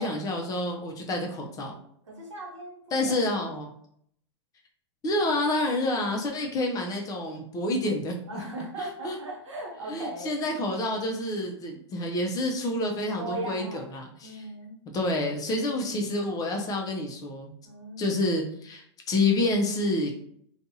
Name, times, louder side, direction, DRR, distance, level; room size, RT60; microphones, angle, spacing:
voice 1, 0.0-1.7 2.9-3.7 5.0-8.4 8.8-9.2 9.9-14.5 14.9-17.5 18.0-20.1, left 2 dB, 25° left, 2 dB, 0.5 m, -28 dB
voice 2, 2.1-3.2 8.3-10.3 13.2-13.8 14.2-14.8 17.6-18.2, right 2 dB, 90° right, -2 dB, 1.0 m, -38 dB
2.5 x 2.3 x 2.7 m, 0.67 s
hypercardioid pair, 115°, 15 cm